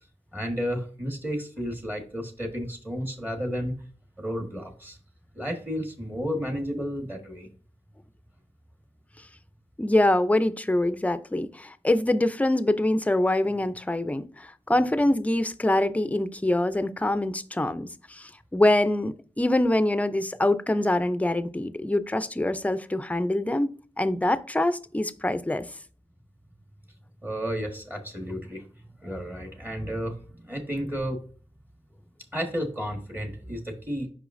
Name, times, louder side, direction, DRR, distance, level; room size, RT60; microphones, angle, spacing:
voice 1, 0.3-3.8 4.2-5.0 5.3-7.5 27.2-28.6 29.0-31.2 32.3-34.1, equal, 15° right, 1.4 m, -32 dB
voice 2, 9.8-23.7 24.0-25.7, left 1 dB, 10° left, 0.5 m, -24 dB
8.0 x 5.6 x 2.6 m
wide cardioid pair, 115°, 11 cm